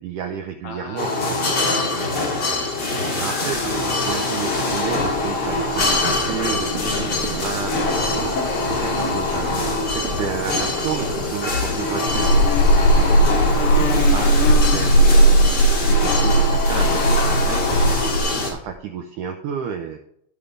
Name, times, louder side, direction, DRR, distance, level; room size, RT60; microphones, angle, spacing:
voice 1, 0.0-1.7 3.2-15.4 15.9-17.8 18.3-20.0, right 8 dB, 85° right, 2 dB, 1.8 m, -31 dB
voice 2, 0.6-2.5 6.6-7.4 13.7-14.2, left 6 dB, 75° left, 3 dB, 2.1 m, -40 dB
sound 1, 1.0-18.5, left 2 dB, 40° left, 1.6 m, -24 dB
sound 2, 3.2-14.0 14.3-14.8 15.1-15.4 15.8-16.0 17.1-17.2 17.4-17.5 17.8-18.8, equal, 60° right, 1.4 m, -35 dB
Buzz, 12.1-18.2, right 1 dB, 90° left, 3.4 m, -17 dB
14.5 x 5.4 x 3.3 m, 0.72 s
omnidirectional pair, 4.6 m